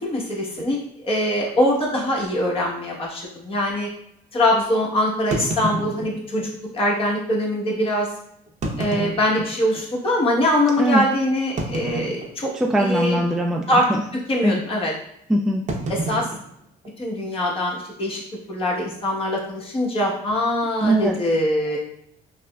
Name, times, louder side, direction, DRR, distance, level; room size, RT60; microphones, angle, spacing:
voice 1, 0.0-3.9 4.3-8.1 8.8-12.5 12.8-13.2 13.7-13.9 14.3-14.9 15.9-16.3 17.0-18.2 18.5-21.8, left 1 dB, 35° left, -3 dB, 1.1 m, -23 dB
sound 1, 0.6-0.7 1.5-1.6 1.9-2.0 2.6-2.7 5.3-6.5 7.3-7.4 8.5-9.9 10.4-10.5 11.6-12.7 12.9-13.3 13.5-13.9 15.7-17.3, right 2 dB, 45° right, 0.7 m, -30 dB
voice 2, 12.5-14.0 14.4-14.6 15.3-15.6 20.8-21.2, right 1 dB, 5° right, 1 dB, 0.3 m, -21 dB
5.7 x 2.1 x 2.3 m, 0.74 s
cardioid pair, 110°, 17 cm